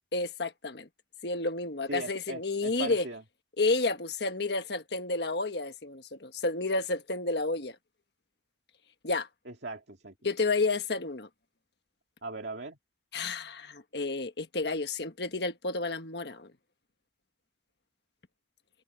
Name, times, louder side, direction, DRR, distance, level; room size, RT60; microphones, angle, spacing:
voice 1, 0.1-0.9 1.2-3.1 3.6-7.8 9.0-9.3 10.2-11.3 13.1-16.5, left 3 dB, 60° left, 1.4 m, -31 dB
voice 2, 1.9-3.2 9.5-10.1 12.2-12.8, right 2 dB, 65° right, 2.1 m, -39 dB
open air
head